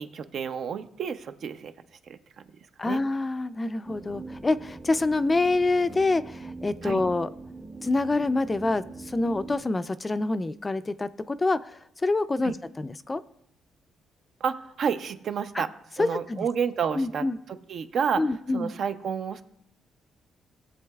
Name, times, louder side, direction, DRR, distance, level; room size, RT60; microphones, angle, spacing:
voice 1, 0.0-1.7 2.1-2.2 2.8-3.0 6.8-7.0 12.4-12.5 14.4-15.7 16.0-18.2 18.5-19.4, right 7 dB, 60° right, 10 dB, 0.6 m, -30 dB
voice 2, 2.8-7.3 7.8-13.2 15.5-15.6 16.0-16.5 16.9-17.4 18.2-18.7, left 2 dB, 20° left, 13 dB, 0.4 m, -26 dB
sound 1, 3.8-9.6, right 3 dB, 25° right, 0.8 m, -42 dB
18.0 x 7.5 x 2.3 m, 0.76 s
cardioid pair, 90°, 0 cm